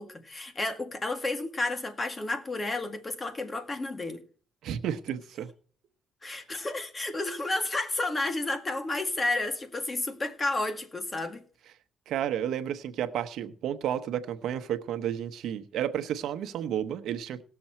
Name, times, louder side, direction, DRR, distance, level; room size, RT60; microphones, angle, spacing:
voice 1, 0.0-4.2 6.2-11.4, left 2 dB, 30° left, 1.9 m, -31 dB
voice 2, 4.6-5.5 12.1-17.4, right 10 dB, 80° right, 1.0 m, -32 dB
18.5 x 7.0 x 4.4 m
cardioid pair, 90°, 0 cm